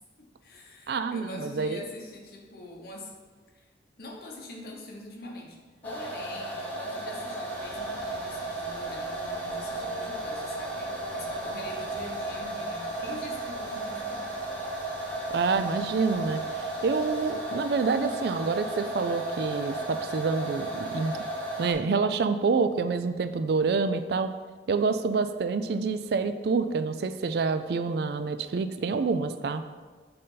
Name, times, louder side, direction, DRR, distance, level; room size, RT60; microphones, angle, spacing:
voice 1, 0.2-3.1 3.5-3.7 4.0-14.3, left 1 dB, 55° left, 0 dB, 1.1 m, -44 dB
voice 2, 0.9-1.8 15.3-16.4 16.8-21.2 21.6-24.3 24.7-29.6, right 4 dB, 60° right, 10 dB, 0.3 m, -27 dB
sound 1, 5.2-15.4, left 1 dB, 85° right, 0.8 m, -53 dB
sound 2, 5.8-21.7, right 2 dB, 10° left, 1.0 m, -34 dB
sound 3, 7.5-17.3, right 1 dB, 25° right, 1.6 m, -52 dB
7.6 x 3.8 x 3.9 m, 1.4 s
head